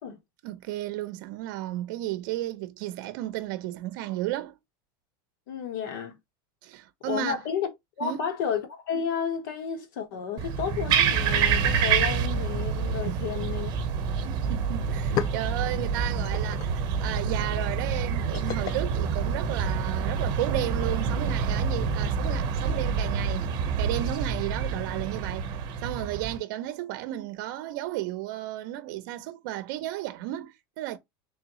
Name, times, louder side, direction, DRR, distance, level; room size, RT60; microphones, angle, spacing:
voice 1, 0.4-4.6 6.6-7.4 8.0-8.2 13.1-13.5 14.1-23.5 23.8-25.5 25.8-31.0, right 14 dB, 65° right, 0.6 m, -33 dB
voice 2, 5.5-6.2 7.0-7.7 8.0-13.7, left 7 dB, 75° left, 1.4 m, -31 dB
sound 1, 10.4-26.4, right 6 dB, 40° right, 0.9 m, -27 dB
sound 2, 14.4-14.5 14.8-20.0, left 10 dB, 35° left, 0.4 m, -38 dB
3.6 x 3.5 x 3.0 m
supercardioid pair, 155°, 11 cm